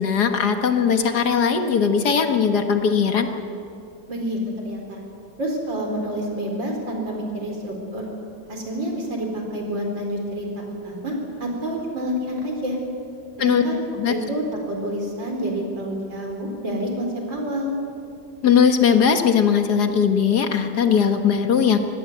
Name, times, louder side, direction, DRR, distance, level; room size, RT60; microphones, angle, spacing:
voice 1, 0.0-3.3 13.4-13.6 14.0-14.1 18.4-21.8, left 7 dB, 60° left, 6 dB, 1.9 m, -19 dB
voice 2, 4.1-5.0 5.4-8.0 8.5-12.8 13.4-17.7, equal, 90° right, 1 dB, 5.1 m, -28 dB
25.0 x 18.5 x 8.1 m, 2.6 s
omnidirectional pair, 2.0 m